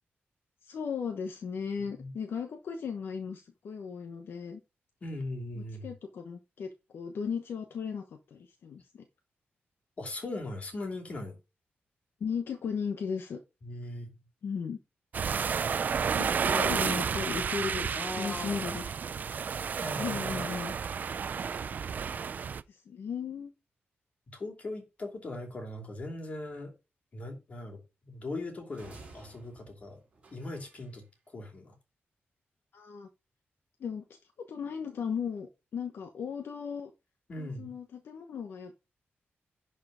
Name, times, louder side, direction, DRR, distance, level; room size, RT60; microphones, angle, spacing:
voice 1, 0.6-4.6 5.5-9.0 12.2-13.4 14.4-14.8 16.2-18.9 20.0-20.7 22.7-23.5 32.7-33.1 33.8-34.0 34.4-36.9 37.4-38.7, left 6 dB, 65° left, 1.1 m, -36 dB
voice 2, 5.0-5.9 10.0-11.4 13.6-14.1 16.2-16.7 17.3-17.4 17.9-18.6 19.7-20.5 24.3-26.7 27.1-30.0 30.3-31.8 37.3-37.7, left 2 dB, 35° left, 2.9 m, -40 dB
sound 1, 15.1-22.6, right 6 dB, 45° right, 0.4 m, -31 dB
sound 2, 28.7-31.0, right 3 dB, 25° right, 5.4 m, -53 dB
11.0 x 4.7 x 5.0 m
wide cardioid pair, 180°, 4 cm